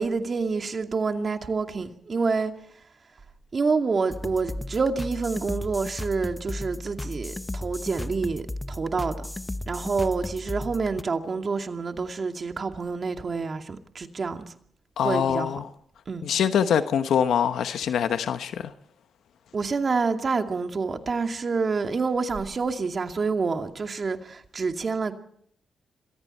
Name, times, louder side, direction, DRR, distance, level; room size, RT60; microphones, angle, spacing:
voice 1, 0.0-2.5 3.5-9.3 9.7-14.4 15.0-15.5 16.1-16.3 19.5-25.1, right 4 dB, 50° right, 2.4 m, -27 dB
sound 1, 4.1-11.0, left 1 dB, 20° left, 0.9 m, -35 dB
voice 2, 15.0-15.7 16.2-18.7, left 8 dB, 85° left, 1.1 m, -24 dB
27.0 x 22.5 x 4.4 m
cardioid pair, 60°, 0 cm